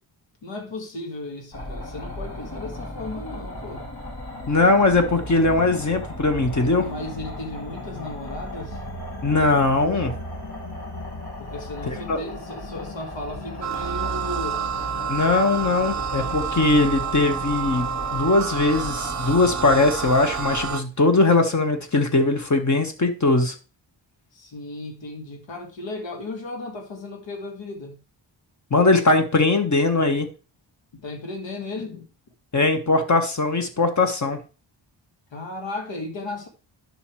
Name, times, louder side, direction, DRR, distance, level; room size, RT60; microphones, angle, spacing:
voice 1, 0.4-3.9 6.7-8.8 11.4-14.6 24.3-28.0 30.9-32.1 35.3-36.5, left 2 dB, 85° left, 1.8 m, -35 dB
sound 1, 1.5-20.7, left 1 dB, 55° left, 2.9 m, -35 dB
voice 2, 4.5-6.9 9.2-10.1 11.9-12.2 15.1-23.5 28.7-30.3 32.5-34.4, left 3 dB, 40° left, 1.4 m, -20 dB
sound 2, 13.6-20.8, right 7 dB, 40° right, 0.7 m, -29 dB
11.0 x 5.7 x 3.2 m
wide cardioid pair, 125°, 44 cm